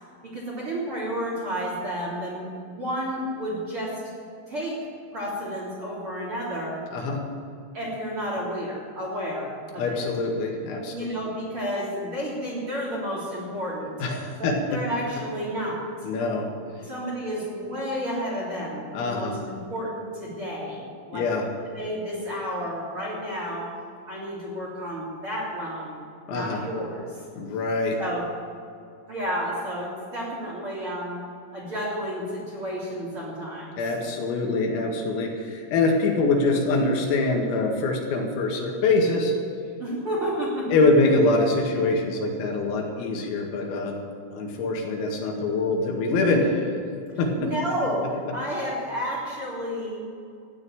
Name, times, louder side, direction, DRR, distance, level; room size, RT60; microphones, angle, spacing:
voice 1, 0.2-4.0 4.5-4.8 5.1-6.8 7.7-10.0 10.9-13.9 14.4-15.9 16.6-21.3 21.7-23.7 24.1-25.9 26.3-27.2 28.0-28.2 29.1-33.8 39.8-40.8 47.4-50.0, equal, 30° right, -5 dB, 3.5 m, -31 dB
voice 2, 6.9-7.2 9.8-10.9 14.0-14.6 16.0-16.5 18.9-19.4 21.1-21.5 26.3-26.6 27.4-28.0 33.8-39.3 40.7-44.0 44.3-46.8 47.2-47.3, left 3 dB, 85° left, 1 dB, 4.7 m, -24 dB
15.0 x 10.0 x 8.8 m, 2.5 s
omnidirectional pair, 6.0 m